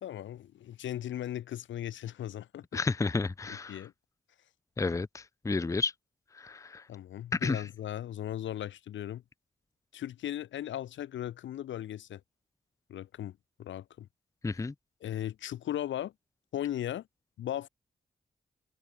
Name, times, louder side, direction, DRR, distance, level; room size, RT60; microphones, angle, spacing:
voice 1, 0.0-2.8 3.5-3.9 6.9-9.2 9.9-12.2 12.9-14.1 15.0-16.1 16.5-17.1 17.4-17.7, left 11 dB, 90° left, 0.8 m, -37 dB
voice 2, 2.7-3.8 4.8-5.9 6.3-6.8 7.3-7.6 14.4-14.7, left 3 dB, 15° left, 0.4 m, -31 dB
supercardioid pair, 45°, 19 cm